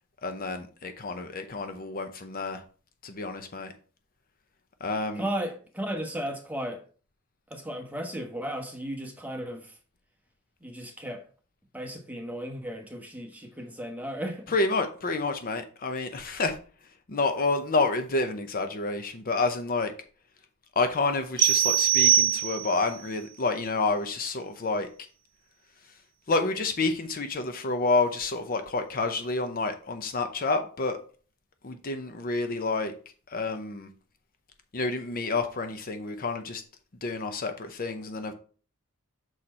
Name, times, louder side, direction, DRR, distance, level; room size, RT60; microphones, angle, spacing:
voice 1, 0.2-2.6 3.0-3.7 4.8-5.3 14.5-16.6 17.1-19.9 20.8-24.9 26.3-31.0 31.6-32.9 33.3-33.9 34.7-36.6 37.0-38.3, left 3 dB, 40° left, 0.7 m, -29 dB
voice 2, 5.2-6.8 7.5-9.7 10.6-11.2 11.7-14.5, equal, 5° right, 1.0 m, -35 dB
sound 1, 21.4-22.9, right 11 dB, 60° right, 0.4 m, -22 dB
6.4 x 4.3 x 4.2 m
head